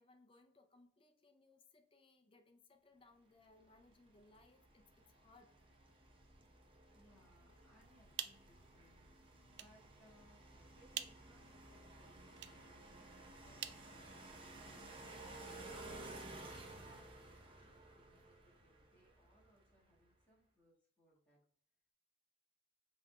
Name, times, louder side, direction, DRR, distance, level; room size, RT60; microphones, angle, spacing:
voice 1, 0.0-5.5, left 3 dB, 30° left, 5 dB, 0.5 m, -67 dB
sound 1, 3.6-19.7, right 2 dB, 30° right, 0.7 m, -55 dB
voice 2, 6.9-15.0 15.4-21.4, equal, 10° left, -7 dB, 1.6 m, -71 dB
sound 2, 7.9-14.7, right 11 dB, 70° right, 0.3 m, -52 dB
5.4 x 3.3 x 2.2 m, 0.62 s
head